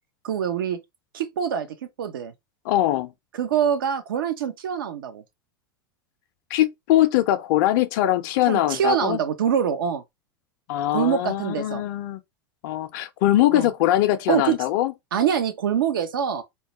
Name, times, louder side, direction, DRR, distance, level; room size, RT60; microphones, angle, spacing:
voice 1, 0.2-0.8 1.1-1.7 2.0-2.3 3.3-5.2 8.5-10.0 10.9-11.8 13.5-13.7 14.3-14.6 15.1-16.4, right 8 dB, 80° right, 0.6 m, -24 dB
voice 2, 2.6-3.1 6.5-9.2 10.7-12.2 12.6-14.9, left 14 dB, 60° left, 0.4 m, -22 dB
2.2 x 2.1 x 2.9 m
hypercardioid pair, 100°, 11 cm